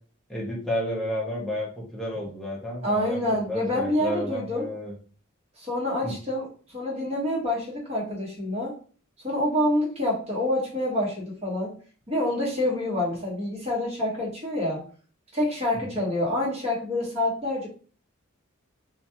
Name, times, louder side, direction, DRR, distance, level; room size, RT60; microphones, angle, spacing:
voice 1, 0.3-4.9 6.0-6.1 15.8-15.9, equal, ahead, -4 dB, 0.6 m, -31 dB
voice 2, 2.8-4.7 5.6-8.7 9.2-11.7 12.1-14.8 15.3-17.7, left 1 dB, 30° right, -5 dB, 1.2 m, -27 dB
2.5 x 2.2 x 2.8 m, 0.41 s
head